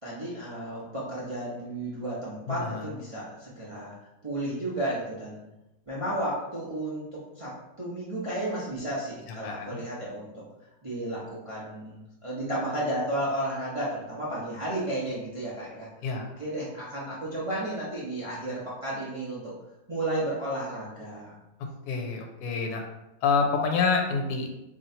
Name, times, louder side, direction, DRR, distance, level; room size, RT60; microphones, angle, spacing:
voice 1, 0.0-4.0 4.2-5.4 5.9-10.3 10.8-15.9 16.4-19.5 19.9-21.4, right 1 dB, 40° right, -8 dB, 0.4 m, -33 dB
voice 2, 2.5-2.9 9.4-9.8 16.0-16.3 21.9-22.8 23.2-24.6, left 5 dB, 70° left, 3 dB, 1.1 m, -27 dB
3.0 x 2.7 x 4.2 m, 0.93 s
omnidirectional pair, 1.9 m